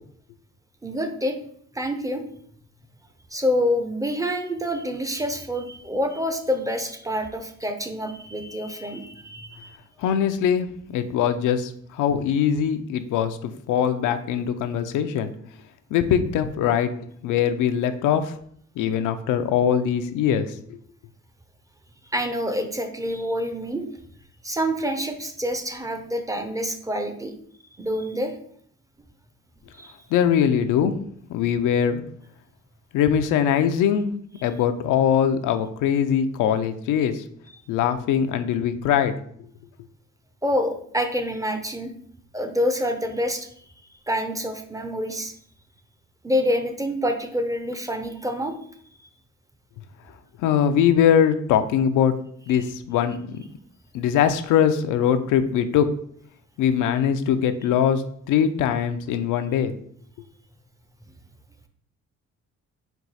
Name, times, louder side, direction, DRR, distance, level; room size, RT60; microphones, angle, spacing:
voice 1, 0.8-1.4 1.7-2.2 3.3-9.8 22.1-23.9 24.4-27.3 27.8-28.3 29.8-29.9 40.4-41.9 42.3-43.5 44.1-45.3 46.2-48.6, equal, 10° right, 6 dB, 0.5 m, -27 dB
voice 2, 10.0-15.3 15.9-16.9 17.2-18.3 18.8-20.8 30.1-30.9 31.3-32.0 32.9-34.1 34.4-37.2 37.7-39.2 50.4-52.1 52.5-53.4 53.9-55.9 56.6-58.0 58.3-59.8, left 8 dB, 85° left, 9 dB, 0.5 m, -22 dB
4.5 x 2.3 x 4.0 m, 0.62 s
cardioid pair, 90°, 30 cm